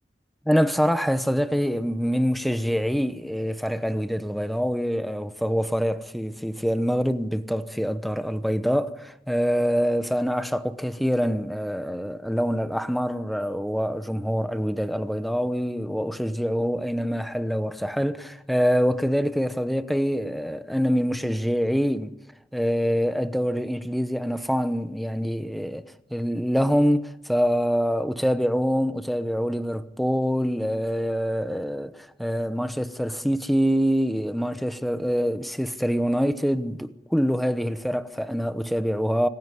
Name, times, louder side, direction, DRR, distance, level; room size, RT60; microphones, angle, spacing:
voice 1, 0.5-22.1 22.5-25.8 26.1-39.3, equal, ahead, 1.0 m, -25 dB
25.5 x 15.5 x 9.8 m
head